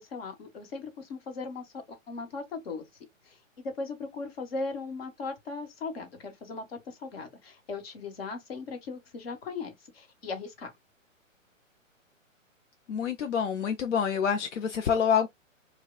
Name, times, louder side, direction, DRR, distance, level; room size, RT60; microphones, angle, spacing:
voice 1, 0.0-2.9 3.2-3.4 3.6-10.7, left 4 dB, 50° left, 1.3 m, -38 dB
voice 2, 12.9-15.3, left 7 dB, 65° left, 0.5 m, -27 dB
4.6 x 2.3 x 2.2 m
figure-of-eight pair, 125°, 39 cm